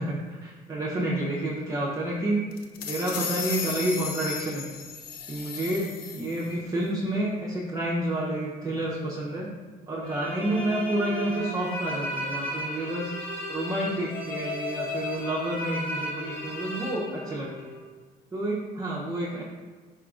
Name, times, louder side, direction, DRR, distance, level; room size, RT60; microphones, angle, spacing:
voice 1, 0.0-2.4 2.8-4.6 5.3-5.9 6.1-9.5 9.9-13.1 13.5-17.7 18.3-19.4, right 1 dB, 20° right, -6 dB, 0.6 m, -29 dB
sound 1, 2.5-6.5, left 7 dB, 65° left, 0.4 m, -35 dB
sound 2, 10.0-17.8, left 1 dB, 15° left, 1.3 m, -34 dB
4.9 x 3.6 x 2.4 m, 1.4 s
cardioid pair, 110°, 17 cm